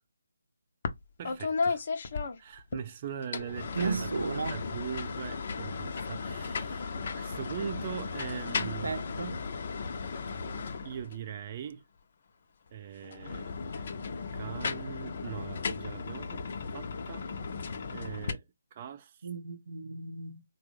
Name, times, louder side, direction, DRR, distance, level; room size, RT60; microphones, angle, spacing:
sound 1, 0.8-1.0 1.2-2.8 3.2-11.3 13.0-18.3, left 4 dB, 45° left, 0.6 m, -35 dB
voice 1, 1.2-1.8 2.4-4.1 4.5-9.0 10.8-11.8 12.7-13.9 14.3-16.4 16.7-17.3 17.9-18.4 18.7-19.3, right 9 dB, 30° right, 0.3 m, -41 dB
voice 2, 3.7-4.6 8.6-9.4 19.2-20.4, right 4 dB, 75° right, 0.6 m, -34 dB
3.7 x 2.2 x 3.1 m
hypercardioid pair, 160°, 0 cm